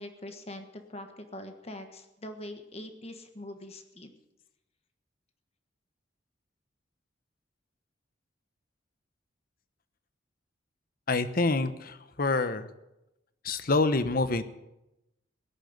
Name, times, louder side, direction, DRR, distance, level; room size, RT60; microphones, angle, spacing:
voice 1, 0.0-4.1, left 1 dB, 35° left, 6 dB, 1.4 m, -43 dB
voice 2, 11.1-12.7 13.4-14.4, left 3 dB, 50° left, 12 dB, 1.0 m, -27 dB
17.0 x 10.5 x 8.0 m, 0.93 s
head